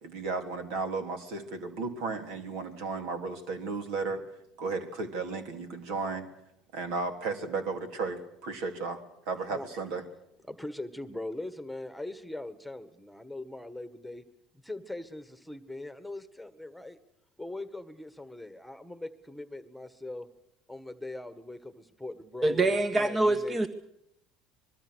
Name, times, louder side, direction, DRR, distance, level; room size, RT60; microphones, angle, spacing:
voice 1, 0.0-4.2 4.6-6.3 6.7-10.0, right 4 dB, 70° right, 7 dB, 3.3 m, -34 dB
voice 2, 10.5-14.2 14.6-17.0 17.4-20.3 20.7-23.7, left 2 dB, ahead, 11 dB, 1.8 m, -41 dB
voice 3, 22.4-23.7, right 2 dB, 30° right, 10 dB, 1.5 m, -25 dB
25.0 x 21.5 x 6.5 m, 0.78 s
hypercardioid pair, 80°, 0 cm